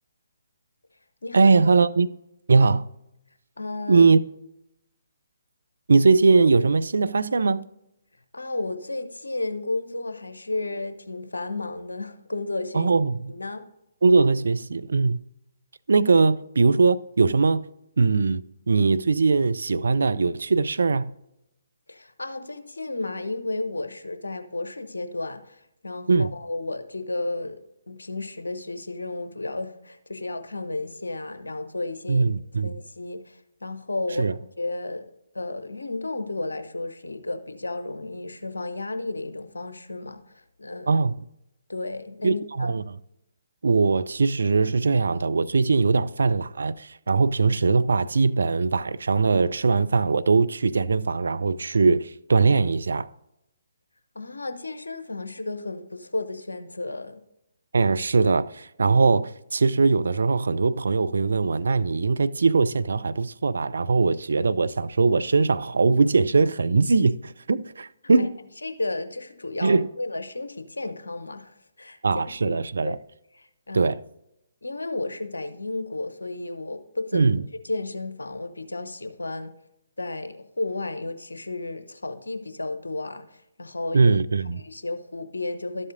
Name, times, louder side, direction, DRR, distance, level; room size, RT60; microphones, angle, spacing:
voice 1, 1.3-2.1 2.5-2.9 3.9-4.2 5.9-7.7 12.7-13.3 14.0-15.2 15.9-17.7 18.0-21.1 26.1-26.3 32.1-32.7 34.2-34.3 40.9-41.2 42.2-43.0 43.6-53.1 57.7-68.3 69.6-69.9 72.0-73.0 73.7-74.0 77.1-77.4 83.9-84.6, right 4 dB, 65° right, 0.4 m, -21 dB
voice 2, 3.6-4.0 8.3-12.9 13.3-13.7 21.9-27.6 27.9-32.3 32.6-35.1 35.3-41.0 41.7-42.7 54.1-57.2 68.2-68.3 68.6-72.0 72.3-72.6 72.8-72.9 73.3-73.9 74.6-77.3 77.6-79.5 80.0-84.1 84.6-85.9, left 2 dB, 75° left, 0.8 m, -33 dB
12.0 x 7.6 x 2.6 m
figure-of-eight pair, 135°, 0 cm